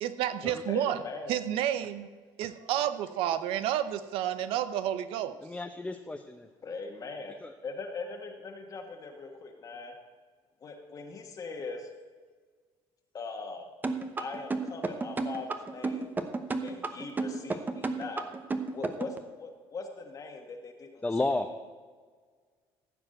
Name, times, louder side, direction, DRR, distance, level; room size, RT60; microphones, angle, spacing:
voice 1, 0.0-1.0 1.3-2.1 2.4-5.4, right 11 dB, 80° right, 13 dB, 0.8 m, -30 dB
voice 2, 0.7-1.4 6.6-7.3 7.6-9.9 10.6-11.9 13.1-13.6 14.2-16.1 16.6-18.2 18.7-21.1, left 4 dB, 40° left, 2 dB, 1.5 m, -40 dB
voice 3, 5.4-6.5 7.4-7.5 21.0-21.5, left 2 dB, 10° left, 4 dB, 0.7 m, -32 dB
sound 1, 13.8-19.2, right 3 dB, 20° right, 0.9 m, -31 dB
15.0 x 5.0 x 7.7 m, 1.5 s
cardioid pair, 110°, 9 cm